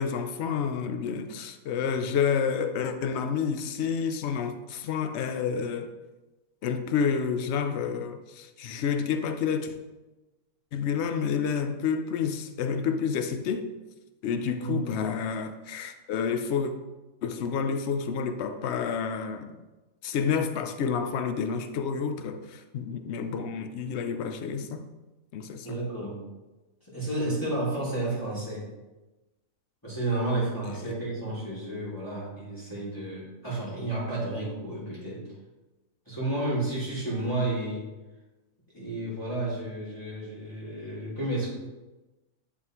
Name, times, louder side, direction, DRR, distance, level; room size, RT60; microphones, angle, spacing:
voice 1, 0.0-5.9 6.6-9.8 10.7-13.7 14.2-16.7 17.2-19.6 20.0-24.8 25.3-25.7, left 6 dB, 60° left, 0.8 m, -29 dB
voice 2, 14.6-14.9 25.6-26.2 26.9-28.7 29.8-35.3 36.1-37.9 38.7-41.5, right 2 dB, 15° left, 2.5 m, -31 dB
11.0 x 4.1 x 3.0 m
omnidirectional pair, 1.5 m